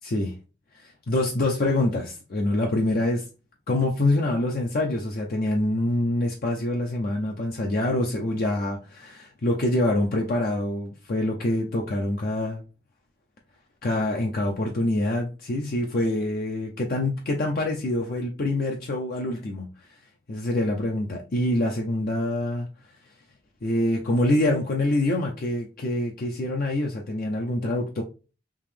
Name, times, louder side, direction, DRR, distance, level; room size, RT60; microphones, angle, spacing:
voice 1, 0.0-0.4 0.7-3.2 3.7-12.6 13.8-19.7 20.3-22.7 23.6-28.0, left 1 dB, 50° left, 0.5 m, -25 dB
3.5 x 2.8 x 3.3 m
head